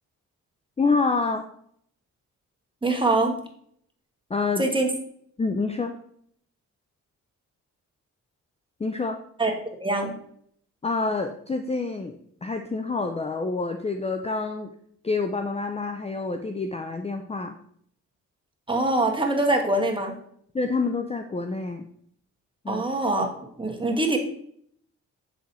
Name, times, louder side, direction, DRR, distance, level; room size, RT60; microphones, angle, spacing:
voice 1, 0.8-1.4 4.3-4.6 5.4-6.0 8.8-9.2 10.8-14.7 15.0-17.5 20.5-21.9 22.6-22.8, left 4 dB, 20° left, 6 dB, 0.5 m, -27 dB
voice 2, 2.8-3.4 4.6-4.9 9.4-9.5 9.8-10.1 18.7-20.2 22.7-23.3 23.6-24.2, right 2 dB, 15° right, 2 dB, 1.5 m, -23 dB
7.3 x 3.8 x 4.2 m, 0.65 s
cardioid pair, 70°, 32 cm